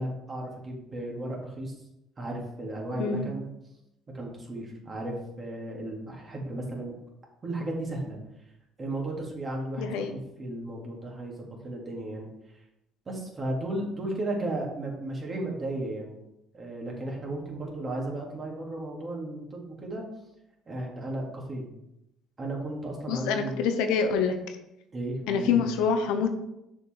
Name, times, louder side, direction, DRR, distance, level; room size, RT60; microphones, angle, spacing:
voice 1, 0.0-1.7 2.2-3.5 4.1-6.9 7.4-8.2 8.8-12.3 13.1-16.2 16.5-20.1 20.7-21.7 22.4-23.6 24.9-25.6, right 1 dB, 35° right, -1 dB, 2.6 m, -34 dB
voice 2, 3.0-3.3 9.8-10.1 23.1-24.3 25.3-26.3, left 6 dB, 75° left, 6 dB, 0.8 m, -26 dB
6.4 x 5.2 x 4.6 m, 0.86 s
hypercardioid pair, 65°, 0 cm